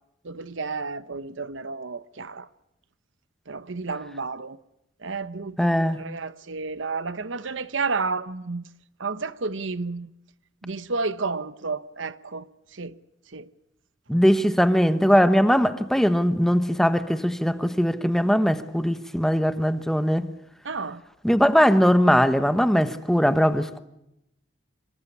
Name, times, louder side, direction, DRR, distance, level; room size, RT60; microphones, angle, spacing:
voice 1, 0.2-2.5 3.5-4.6 5.0-8.7 9.0-10.1 10.6-12.4 12.7-12.9 13.3-13.5 20.6-21.0, right 4 dB, 75° right, 1.0 m, -31 dB
voice 2, 5.6-6.1 14.1-20.3 21.2-23.8, equal, ahead, 1.1 m, -20 dB
26.0 x 22.5 x 9.8 m
head